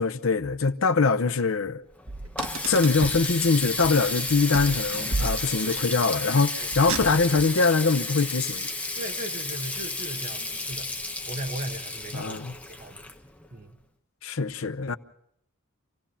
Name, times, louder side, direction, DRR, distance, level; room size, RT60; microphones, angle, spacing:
voice 1, 0.0-1.8 2.6-8.7 12.1-12.5 14.2-15.0, left 4 dB, 70° left, 0.8 m, -23 dB
Water tap faucet, 1.9-13.6, left 2 dB, 5° left, 1.1 m, -32 dB
Car, 2.1-3.3 4.5-5.8 6.7-7.5, right 2 dB, 70° right, 1.6 m, -32 dB
voice 2, 9.0-10.9 11.3-13.0 13.5-13.8, right 1 dB, 40° right, 1.9 m, -37 dB
27.0 x 16.5 x 5.8 m
head